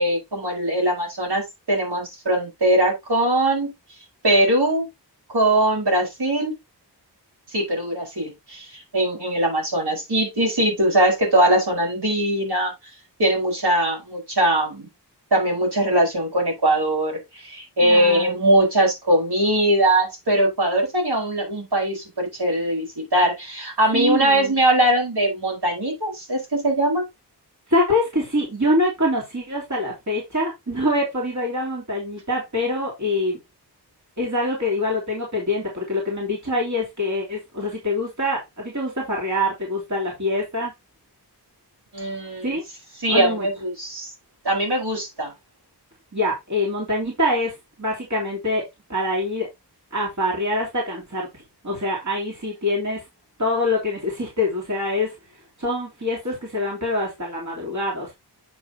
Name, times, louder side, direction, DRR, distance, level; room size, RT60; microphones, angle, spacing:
voice 1, 0.0-3.7 4.2-4.9 5.3-6.6 7.5-12.7 13.2-14.9 15.3-27.0 41.9-42.6 43.0-44.1 44.4-45.3, right 1 dB, 70° right, 4.7 m, -21 dB
voice 2, 17.8-18.5 23.9-24.5 27.7-33.4 34.2-40.7 42.4-42.6 43.1-43.5 46.1-49.5 49.9-51.3 51.6-53.0 53.4-55.2 55.6-58.1, left 1 dB, 45° right, 3.3 m, -25 dB
8.5 x 6.2 x 2.8 m
wide cardioid pair, 65°, 41 cm